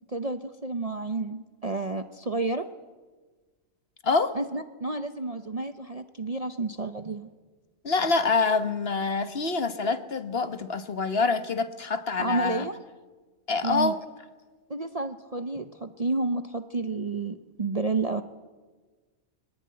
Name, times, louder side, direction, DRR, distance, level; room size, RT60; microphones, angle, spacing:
voice 1, 0.1-2.7 4.3-7.3 12.2-12.8 13.6-13.9 14.7-18.2, right 3 dB, 35° right, 8 dB, 0.7 m, -30 dB
voice 2, 4.0-4.4 7.8-12.7 13.5-14.0, left 4 dB, 45° left, 10 dB, 1.4 m, -26 dB
23.0 x 19.0 x 9.6 m, 1.4 s
omnidirectional pair, 1.5 m